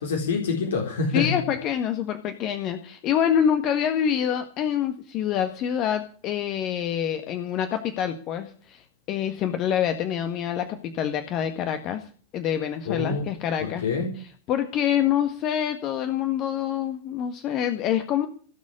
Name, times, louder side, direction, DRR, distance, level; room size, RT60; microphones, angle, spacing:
voice 1, 0.0-1.3 12.9-13.3 13.6-14.1, left 4 dB, 65° left, 2 dB, 3.9 m, -26 dB
voice 2, 1.1-12.0 12.3-13.9 14.5-18.3, left 9 dB, 35° left, 8 dB, 1.6 m, -26 dB
17.0 x 7.6 x 9.7 m, 0.43 s
figure-of-eight pair, 90°, 0 cm